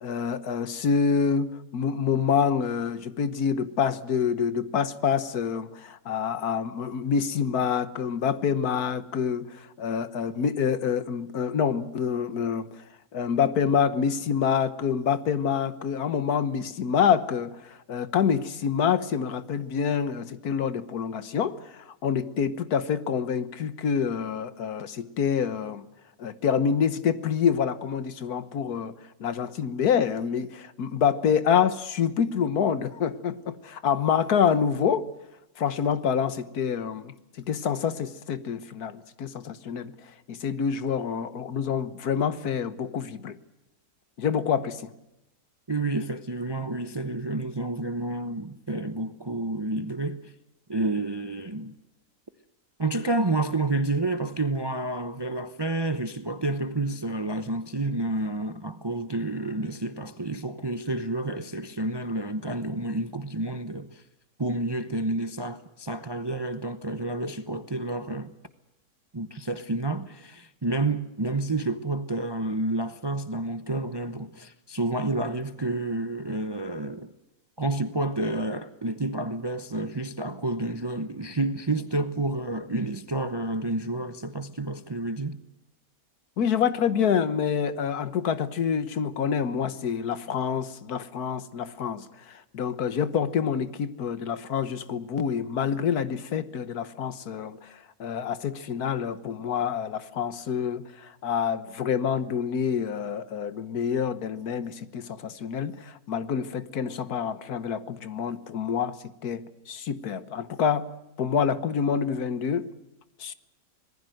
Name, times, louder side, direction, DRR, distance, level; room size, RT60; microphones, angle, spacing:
voice 1, 0.0-12.7 13.1-25.9 26.2-28.9 29.2-35.1 35.6-39.9 40.3-43.4 44.2-44.9 86.4-97.7 98.0-109.0 109.2-110.9 111.2-112.7 113.2-113.3, left 7 dB, 85° left, 1.7 m, -27 dB
voice 2, 45.7-50.3 50.7-51.7 52.8-64.0 64.4-68.3 69.1-77.1 77.6-85.4, right 2 dB, 20° right, 0.7 m, -29 dB
26.0 x 19.5 x 7.8 m
omnidirectional pair, 1.6 m